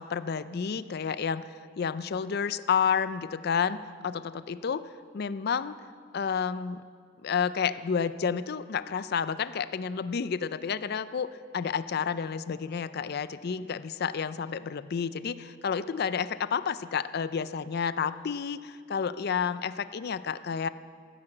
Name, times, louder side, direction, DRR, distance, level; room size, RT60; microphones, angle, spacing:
voice 1, 0.0-1.4 1.8-3.8 4.0-4.8 5.1-5.7 6.1-6.8 7.2-11.3 11.5-20.7, left 6 dB, 50° left, 14 dB, 0.4 m, -30 dB
15.5 x 9.9 x 7.7 m, 2.1 s
head